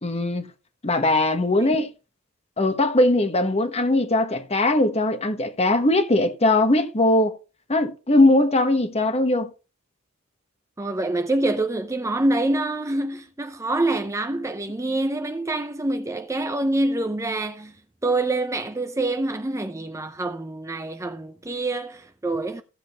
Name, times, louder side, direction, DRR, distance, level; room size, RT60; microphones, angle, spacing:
voice 1, 0.0-0.5 0.8-1.9 2.6-7.4 7.7-9.5, left 2 dB, 30° left, 1.3 m, -20 dB
voice 2, 10.8-17.7 18.0-22.6, right 2 dB, 15° right, 0.6 m, -26 dB
15.0 x 7.6 x 3.0 m
head